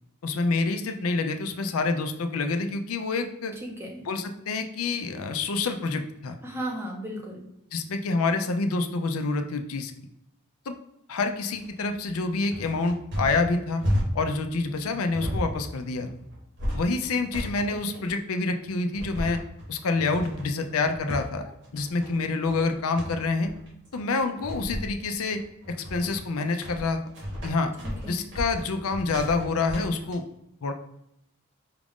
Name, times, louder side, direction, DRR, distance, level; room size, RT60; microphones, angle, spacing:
voice 1, 0.2-3.6 4.1-6.4 7.7-9.9 10.7-10.8 11.1-13.8 14.1-16.1 16.7-19.4 19.7-23.5 23.9-25.4 25.7-27.0 27.4-27.7 28.1-30.2 30.6-30.7, left 3 dB, 75° left, 7 dB, 0.5 m, -27 dB
voice 2, 3.6-4.0 6.4-7.5 17.9-18.1 28.0-28.3, right 1 dB, 10° right, 0 dB, 0.7 m, -35 dB
sound 1, 11.5-30.1, equal, 50° right, 1.1 m, -34 dB
4.9 x 2.4 x 3.5 m, 0.79 s
head